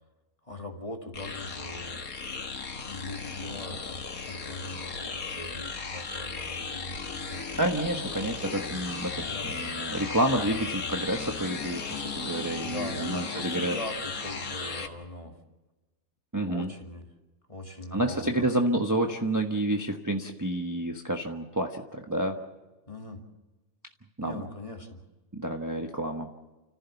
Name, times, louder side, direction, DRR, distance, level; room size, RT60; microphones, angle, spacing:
voice 1, 0.5-2.0 2.9-7.6 9.1-10.0 10.3-10.7 12.6-15.4 16.4-17.1 17.5-18.5 22.9-23.2 24.2-25.0, left 1 dB, 25° left, 3 dB, 2.3 m, -41 dB
sound 1, 1.1-14.9, left 4 dB, 85° left, 2.1 m, -36 dB
voice 2, 7.5-13.8 16.3-16.7 17.9-22.4 24.2-24.4 25.3-26.3, right 1 dB, 15° right, 2 dB, 1.1 m, -29 dB
29.5 x 15.0 x 7.1 m, 1.1 s
omnidirectional pair, 1.4 m